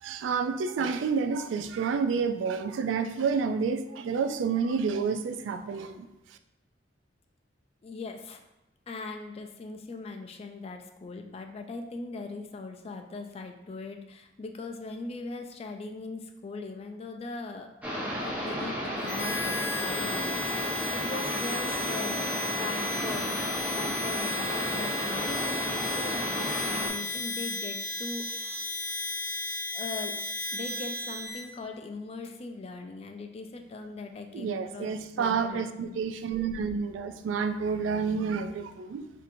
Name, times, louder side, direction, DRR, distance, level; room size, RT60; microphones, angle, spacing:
voice 1, 0.0-6.1 34.3-39.1, right 5 dB, 85° right, 8 dB, 0.3 m, -29 dB
voice 2, 7.8-8.4 8.9-17.7 18.2-28.7 29.7-30.1 30.5-36.0, left 3 dB, 35° left, 5 dB, 0.3 m, -40 dB
sound 1, 17.8-26.9, equal, 10° right, 0.8 m, -33 dB
Harmonica, 19.0-31.5, left 3 dB, 75° left, 0.6 m, -34 dB
4.1 x 2.7 x 2.6 m, 0.95 s
head